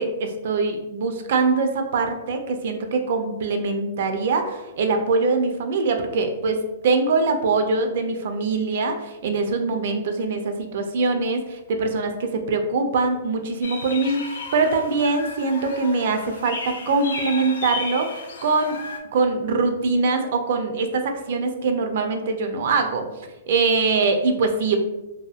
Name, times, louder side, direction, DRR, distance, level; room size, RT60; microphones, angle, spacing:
voice 1, 0.0-18.8 19.1-23.0 23.5-24.8, right 4 dB, 60° right, 6 dB, 0.4 m, -23 dB
sound 1, 13.6-19.0, left 4 dB, 85° left, 0.4 m, -34 dB
2.7 x 2.6 x 2.3 m, 1.0 s
hypercardioid pair, 145°, 0 cm